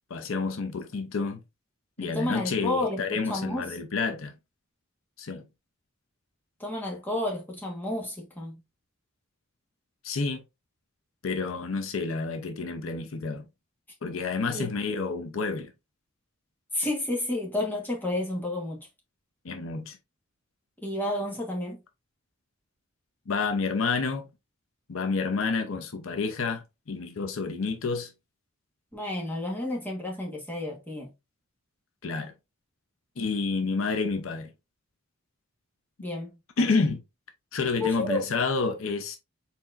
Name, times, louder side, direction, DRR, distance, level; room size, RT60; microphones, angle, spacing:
voice 1, 0.1-1.4 2.0-4.3 5.2-5.4 10.0-10.4 11.2-13.4 14.0-15.7 19.4-20.0 23.3-24.3 24.9-28.1 32.0-32.3 33.2-34.5 36.6-37.0 37.5-39.2, left 4 dB, 75° left, 0.7 m, -29 dB
voice 2, 2.0-3.8 6.6-8.6 14.5-14.7 16.7-18.9 20.8-21.8 28.9-31.1 36.0-36.3 37.8-38.3, left 1 dB, 10° left, 1.3 m, -31 dB
4.2 x 4.1 x 2.5 m
head